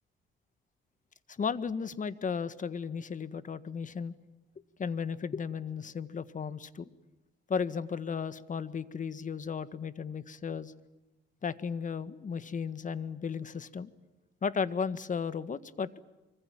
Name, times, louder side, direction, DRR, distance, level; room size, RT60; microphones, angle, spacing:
voice 1, 1.4-4.1 4.8-6.8 7.5-10.7 11.4-13.9 14.4-15.9, left 6 dB, 40° left, 14 dB, 1.7 m, -34 dB
25.5 x 25.0 x 9.0 m, 1.1 s
cardioid pair, 90°, 20 cm